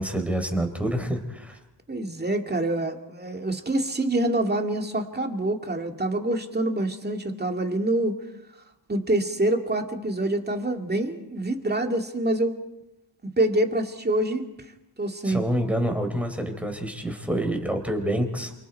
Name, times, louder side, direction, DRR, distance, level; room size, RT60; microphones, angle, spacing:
voice 1, 0.0-1.6 15.2-18.5, right 1 dB, 5° right, 5 dB, 4.0 m, -27 dB
voice 2, 1.9-8.2 8.9-12.6 13.4-14.5 15.0-15.4, right 1 dB, 20° right, 4 dB, 2.2 m, -26 dB
28.0 x 25.5 x 4.6 m, 0.93 s
wide cardioid pair, 110°, 46 cm